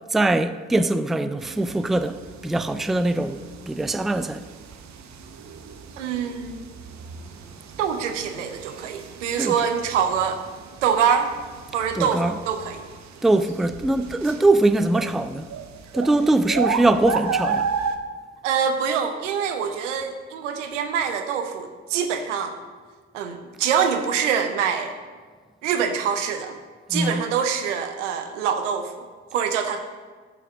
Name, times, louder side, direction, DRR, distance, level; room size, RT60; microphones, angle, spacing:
voice 1, 0.1-3.4 3.7-4.4 9.4-9.5 11.9-12.3 13.2-15.5 15.9-17.7 26.9-27.2, right 2 dB, ahead, 0.3 m, -22 dB
sound 1, 1.4-18.0, right 6 dB, 50° right, 0.8 m, -34 dB
voice 2, 6.0-6.6 7.8-10.4 10.8-11.3 11.7-12.8 18.4-22.6 23.1-24.9 25.6-26.6 26.9-29.0 29.3-29.8, right 7 dB, 90° right, 0.6 m, -25 dB
6.9 x 5.9 x 6.0 m
hypercardioid pair, 40°, 36 cm